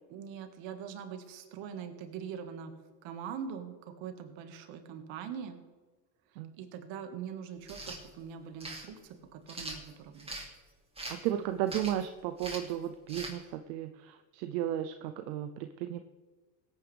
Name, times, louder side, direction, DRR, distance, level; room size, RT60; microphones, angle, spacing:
voice 1, 0.1-5.6 6.3-10.3, right 7 dB, 65° right, 7 dB, 1.9 m, -43 dB
sound 1, 7.6-8.0 8.6-8.9 9.5-10.5 11.0-11.3 11.7-12.0 12.4-12.7 13.1-13.3, right 2 dB, 10° right, 2.7 m, -41 dB
voice 2, 11.1-16.0, right 11 dB, 85° right, 9 dB, 0.7 m, -34 dB
17.0 x 9.5 x 3.4 m, 1.3 s
supercardioid pair, 90°, 49 cm